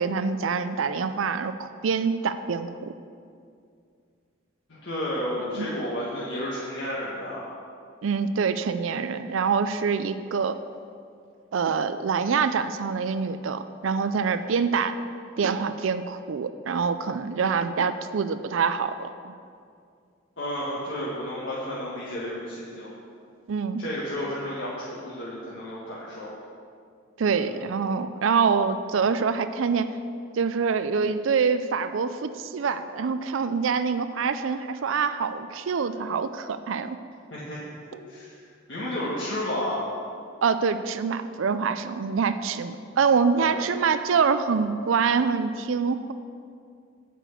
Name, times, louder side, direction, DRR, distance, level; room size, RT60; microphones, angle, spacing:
voice 1, 0.0-2.9 5.5-5.7 8.0-10.6 11.5-15.0 15.4-19.3 23.5-23.8 27.2-30.0 30.3-37.0 40.4-46.1, right 5 dB, 75° right, 11 dB, 0.4 m, -25 dB
voice 2, 4.7-7.4 20.4-22.9 23.8-26.3 27.3-27.6 37.3-37.6 38.1-38.3 38.7-39.9 43.4-43.7, left 1 dB, 60° left, -7 dB, 1.7 m, -32 dB
9.1 x 6.0 x 8.2 m, 2.3 s
head